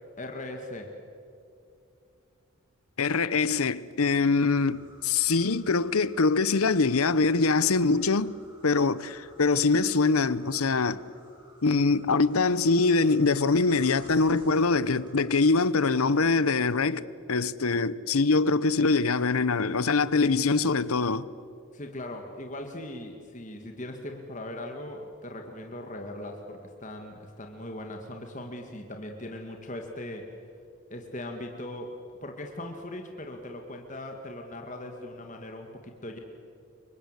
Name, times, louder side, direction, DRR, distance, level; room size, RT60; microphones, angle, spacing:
voice 1, 0.2-0.9 21.7-30.2 30.9-31.9 32.2-36.2, left 1 dB, 35° left, 2.0 m, -39 dB
voice 2, 3.0-8.3 8.6-11.0 11.6-17.0 17.3-21.3, left 4 dB, 80° left, 0.9 m, -23 dB
sound 1, 4.5-15.5, right 1 dB, 20° right, 6.4 m, -55 dB
29.0 x 24.5 x 8.1 m
head